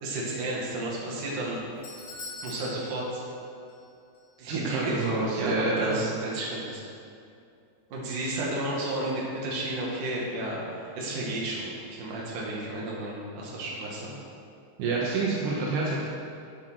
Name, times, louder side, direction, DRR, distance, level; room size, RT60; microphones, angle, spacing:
voice 1, 0.0-1.6 2.4-3.2 4.4-6.8 7.9-11.7 12.0-14.1, right 1 dB, 55° right, -4 dB, 3.2 m, -32 dB
Doorbell, 1.4-3.9 4.1-4.2 5.0-5.1, left 3 dB, 80° left, 5.7 m, -44 dB
voice 2, 4.5-6.0 14.8-16.0, right 3 dB, 75° right, -4 dB, 3.1 m, -28 dB
9.8 x 8.1 x 6.3 m, 2.5 s
omnidirectional pair, 5.0 m